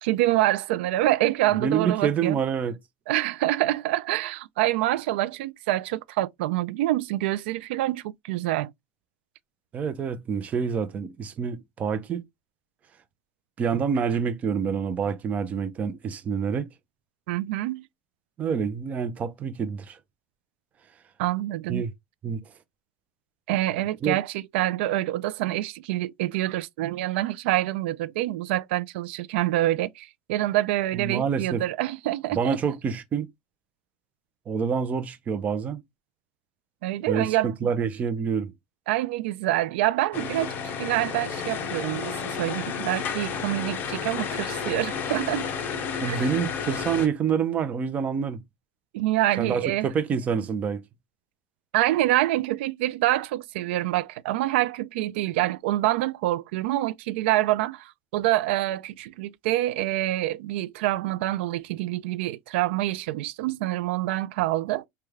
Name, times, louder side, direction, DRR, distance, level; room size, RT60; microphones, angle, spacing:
voice 1, 0.0-2.4 3.1-8.7 17.3-17.9 21.2-21.8 23.5-32.6 36.8-37.5 38.9-45.5 46.1-46.2 48.9-49.9 51.7-64.9, right 15 dB, 90° right, 0.3 m, -26 dB
voice 2, 1.6-2.8 9.7-12.2 13.6-16.7 18.4-20.0 21.7-21.9 22.2-22.4 24.0-24.2 30.9-31.6 32.3-33.3 34.5-35.8 37.1-38.5 46.0-48.4 49.4-50.8, right 6 dB, 25° right, 0.5 m, -27 dB
sound 1, 40.1-47.1, left 6 dB, 35° left, 0.6 m, -31 dB
3.2 x 2.2 x 3.4 m
cardioid pair, 155°, 6 cm